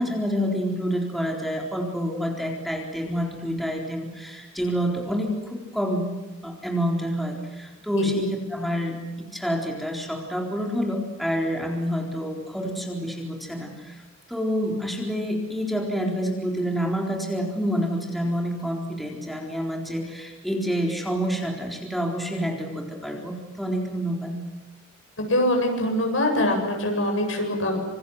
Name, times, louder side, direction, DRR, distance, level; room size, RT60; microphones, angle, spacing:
voice 1, 0.0-6.1 6.4-14.0 14.3-24.4, equal, ahead, 0 dB, 4.0 m, -28 dB
voice 2, 25.3-27.8, left 1 dB, 65° left, 3 dB, 8.0 m, -23 dB
26.5 x 26.5 x 8.0 m, 1.1 s
head